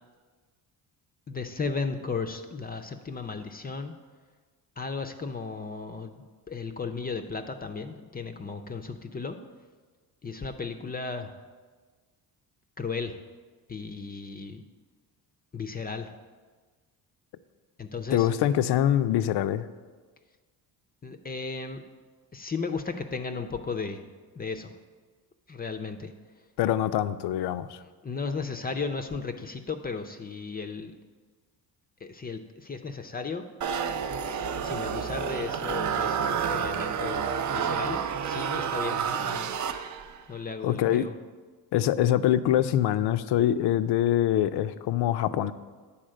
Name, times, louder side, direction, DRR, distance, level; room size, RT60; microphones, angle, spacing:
voice 1, 1.3-3.9 4.8-9.4 10.2-11.3 12.8-13.2 13.7-14.6 15.5-16.1 17.8-18.3 21.0-21.8 22.3-24.0 24.4-24.7 25.5-26.1 28.0-30.9 32.0-33.4 34.6-39.5 40.3-41.1, left 4 dB, 25° left, 7 dB, 0.5 m, -35 dB
voice 2, 18.1-19.7 26.6-27.8 40.6-41.1 41.7-45.5, left 11 dB, 75° left, 13 dB, 0.5 m, -24 dB
sound 1, 33.6-40.2, right 7 dB, 45° right, 0.5 m, -29 dB
8.8 x 4.2 x 6.4 m, 1.4 s
cardioid pair, 105°, 41 cm